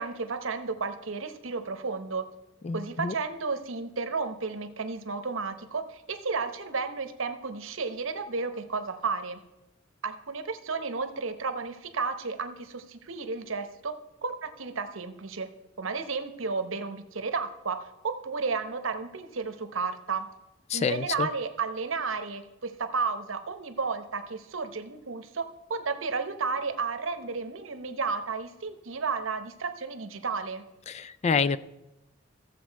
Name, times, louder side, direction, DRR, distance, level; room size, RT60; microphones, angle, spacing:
voice 1, 0.0-2.3 2.7-9.4 10.0-13.9 14.2-15.5 15.8-20.3 20.7-30.7, right 4 dB, 75° right, 9 dB, 0.9 m, -32 dB
voice 2, 2.6-3.1 20.7-21.3 30.9-31.6, left 5 dB, 35° left, 16 dB, 0.3 m, -27 dB
14.5 x 7.3 x 4.6 m, 0.97 s
head